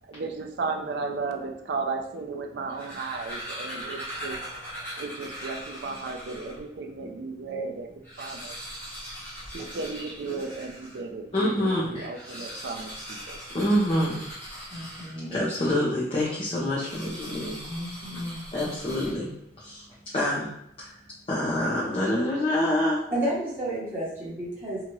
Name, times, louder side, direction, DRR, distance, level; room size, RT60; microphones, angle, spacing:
voice 1, 0.0-4.4 5.0-8.6 9.5-13.4, right 4 dB, 65° right, 4 dB, 0.4 m, -34 dB
sound 1, 2.5-6.7 7.2-7.3 7.5-7.6 7.9-11.1 12.0-15.5 16.8-19.5, equal, 15° left, 0.9 m, -40 dB
voice 2, 11.3-12.1 13.5-14.2 14.7-14.8 15.3-17.6 18.5-19.3 19.6-19.8 20.1-20.5 20.8-20.9 21.3-23.0, left 1 dB, 30° left, -7 dB, 0.6 m, -26 dB
voice 3, 14.7-15.5 17.7-18.4 23.1-24.8, right 1 dB, 15° right, -9 dB, 1.0 m, -32 dB
2.8 x 2.3 x 2.9 m, 0.74 s
head